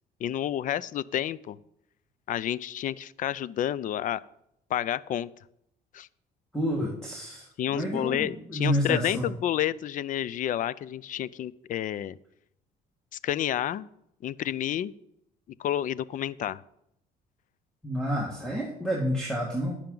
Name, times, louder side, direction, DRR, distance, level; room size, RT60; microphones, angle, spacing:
voice 1, 0.2-1.6 2.3-4.2 4.7-5.3 5.9-6.1 7.6-12.2 13.1-13.9 14.2-14.9 15.6-16.6, left 11 dB, 50° left, 20 dB, 0.4 m, -30 dB
voice 2, 6.5-7.5 7.7-9.3 17.8-19.8, equal, 5° left, -3 dB, 1.9 m, -29 dB
10.5 x 10.0 x 3.9 m, 0.76 s
cardioid pair, 110°, 17 cm